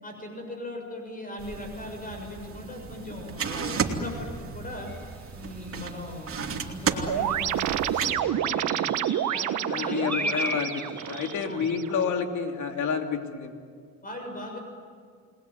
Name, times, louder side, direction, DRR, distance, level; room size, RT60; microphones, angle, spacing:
voice 1, 0.0-4.9 5.3-10.4 11.5-11.7 14.0-14.6, left 1 dB, 30° left, 3 dB, 6.9 m, -39 dB
sound 1, 1.4-8.1, right 5 dB, 45° right, 3.0 m, -34 dB
sound 2, 4.9-5.0 5.6-5.9 6.8-6.9 7.2-11.4, equal, 5° left, 7.8 m, -36 dB
sound 3, 7.1-12.0, right 10 dB, 75° right, 1.5 m, -29 dB
voice 2, 9.7-13.5, left 6 dB, 70° left, 4 dB, 3.0 m, -29 dB
29.0 x 20.5 x 9.4 m, 2.1 s
cardioid pair, 90°, 30 cm